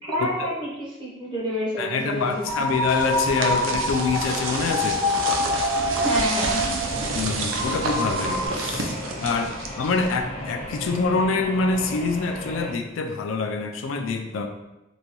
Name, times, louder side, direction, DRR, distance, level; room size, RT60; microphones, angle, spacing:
voice 1, 0.0-2.5 6.0-6.8, equal, 25° right, -6 dB, 0.8 m, -28 dB
voice 2, 1.8-5.0 7.1-9.0 9.2-14.5, left 4 dB, 75° left, 6 dB, 0.4 m, -26 dB
sound 1, 2.2-8.5, left 1 dB, 60° right, 1.1 m, -26 dB
sound 2, 2.4-10.2, right 3 dB, 80° right, 0.5 m, -30 dB
sound 3, 6.8-12.7, left 1 dB, 35° left, 0.6 m, -35 dB
3.8 x 2.3 x 3.0 m, 0.98 s
head